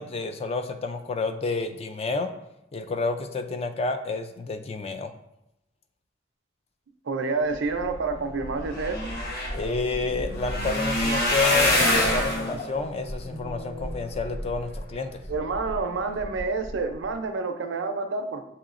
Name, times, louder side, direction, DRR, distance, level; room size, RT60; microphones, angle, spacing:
voice 1, 0.0-2.3 2.7-5.1 9.5-15.2, left 3 dB, 35° left, 7 dB, 0.3 m, -30 dB
voice 2, 7.1-9.0 15.3-18.4, right 3 dB, 75° right, 7 dB, 0.5 m, -28 dB
sound 1, 8.1-8.2 8.4-14.8 15.3-15.8 16.2-16.4 16.7-16.8, left 1 dB, 55° left, 1.2 m, -26 dB
7.2 x 2.9 x 2.4 m, 0.84 s
head